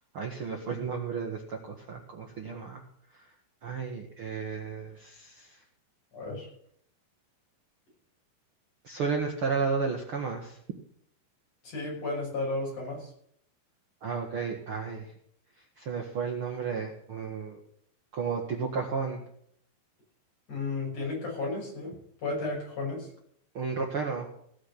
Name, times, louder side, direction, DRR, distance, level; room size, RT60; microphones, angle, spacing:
voice 1, 0.1-2.8 3.1-3.2 3.6-5.6 8.8-10.6 14.0-15.1 15.8-17.6 18.1-19.2 23.5-24.3, right 5 dB, 80° right, 2 dB, 1.2 m, -33 dB
voice 2, 6.1-6.5 11.6-13.1 20.5-23.1, left 3 dB, 45° left, -3 dB, 7.7 m, -33 dB
17.5 x 6.8 x 8.0 m, 0.68 s
omnidirectional pair, 4.9 m